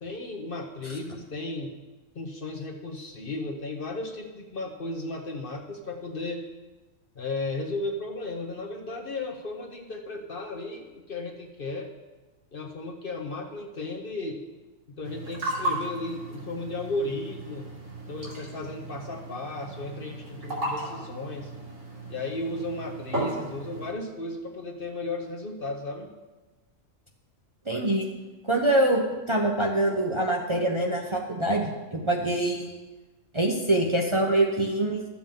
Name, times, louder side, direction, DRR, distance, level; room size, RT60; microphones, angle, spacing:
voice 1, 0.0-1.8 2.1-6.4 7.1-11.9 12.5-14.4 15.0-17.7 18.1-21.5 22.1-26.1, left 2 dB, 45° left, 2 dB, 1.1 m, -35 dB
sound 1, 15.0-23.9, right 1 dB, 75° right, 2.8 m, -35 dB
voice 2, 27.7-28.1 28.4-29.0 29.3-32.7 33.3-35.0, right 1 dB, 25° right, -1 dB, 0.8 m, -24 dB
13.0 x 7.2 x 3.8 m, 1.2 s
omnidirectional pair, 1.3 m